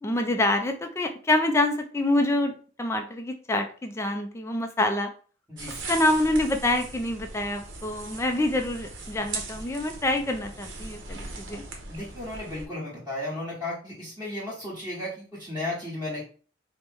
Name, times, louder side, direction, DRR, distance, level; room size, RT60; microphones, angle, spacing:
voice 1, 0.0-5.1 5.9-11.6, left 1 dB, 15° left, 5 dB, 0.3 m, -26 dB
sound 1, 5.6-12.7, right 3 dB, 65° right, 0.8 m, -39 dB
voice 2, 11.9-16.3, left 1 dB, 10° right, -10 dB, 1.2 m, -34 dB
4.5 x 2.1 x 3.3 m, 0.40 s
head